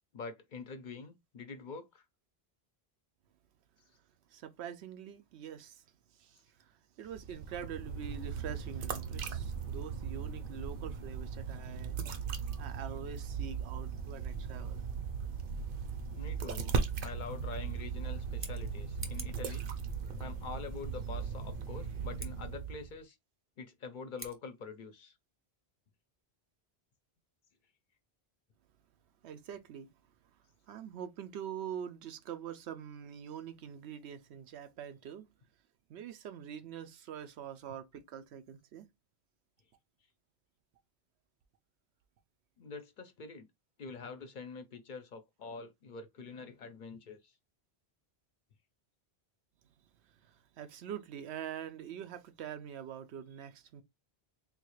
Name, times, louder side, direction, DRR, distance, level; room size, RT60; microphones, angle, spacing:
voice 1, 0.1-2.0 16.1-16.7 17.0-19.7 20.2-23.2 23.6-25.2 42.6-43.5 43.8-47.3, left 4 dB, 55° left, 0.6 m, -45 dB
voice 2, 4.3-5.9 6.1-12.0 12.6-14.9 29.2-29.9 30.2-35.3 35.9-38.9 50.0-53.8, right 9 dB, 90° right, 0.9 m, -45 dB
sound 1, 7.1-23.0, right 6 dB, 60° right, 0.7 m, -38 dB
Scissors, 18.2-19.5 22.1-22.3 24.1-24.4, right 1 dB, 15° right, 0.6 m, -46 dB
3.7 x 2.3 x 3.0 m
omnidirectional pair, 1.1 m